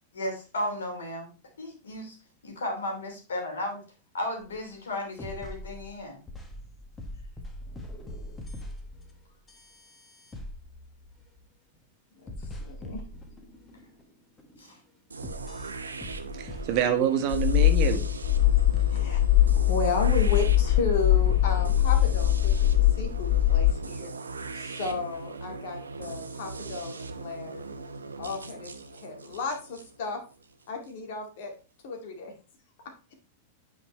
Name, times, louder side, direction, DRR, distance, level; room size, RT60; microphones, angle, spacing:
voice 1, 0.1-1.3 1.6-2.2 2.4-3.8 4.1-6.2 14.6-14.8, left 1 dB, 75° left, 2 dB, 2.9 m, -34 dB
sound 1, 4.4-4.5 5.2-11.8 12.3-14.1 14.4-14.8 15.2-17.1 17.7-20.5 21.3-22.5, left 1 dB, 15° left, 1.5 m, -43 dB
voice 2, 12.2-13.0 18.9-19.2 19.6-24.1 24.5-27.6 28.2-30.2 30.7-31.5 31.8-32.3, left 3 dB, 60° left, 3 dB, 2.2 m, -33 dB
sound 2, 15.1-30.9, right 3 dB, 80° right, 0.8 m, -40 dB
voice 3, 16.3-18.0, right 9 dB, 50° right, 8 dB, 1.4 m, -26 dB
sound 3, 17.3-23.7, left 14 dB, 40° left, 0.5 m, -22 dB
9.3 x 5.2 x 3.1 m, 0.33 s
figure-of-eight pair, 95°, 0 cm